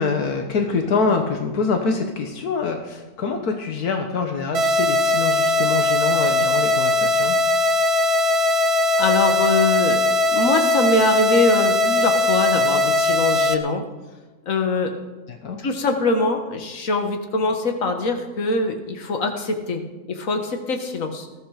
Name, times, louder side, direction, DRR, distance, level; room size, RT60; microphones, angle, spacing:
voice 1, 0.0-7.4 15.3-15.6, left 4 dB, 80° left, 4 dB, 1.7 m, -25 dB
sound 1, 4.5-13.5, left 2 dB, 85° right, 2.1 m, -19 dB
voice 2, 9.0-10.0 10.3-13.8 14.4-14.9 15.6-19.8 20.1-21.3, left 3 dB, 60° left, 4 dB, 1.9 m, -22 dB
20.0 x 14.5 x 5.0 m, 1.2 s
omnidirectional pair, 1.6 m